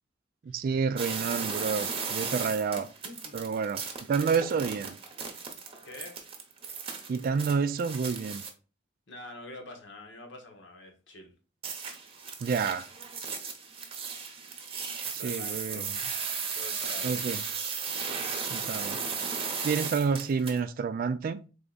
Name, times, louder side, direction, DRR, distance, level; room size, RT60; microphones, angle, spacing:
voice 1, 0.5-2.8 3.3-3.8 4.1-5.0 7.1-8.4 12.4-12.8 15.1-15.8 17.0-17.4 18.5-19.0 19.6-21.4, right 5 dB, 50° right, 0.3 m, -29 dB
sound 1, 1.0-8.5 11.6-20.6, right 5 dB, 30° right, 0.8 m, -36 dB
voice 2, 3.0-3.5 5.8-6.2 9.1-11.3 15.1-16.0 16.4-17.4, left 2 dB, 70° left, 1.2 m, -46 dB
3.8 x 3.4 x 3.9 m
head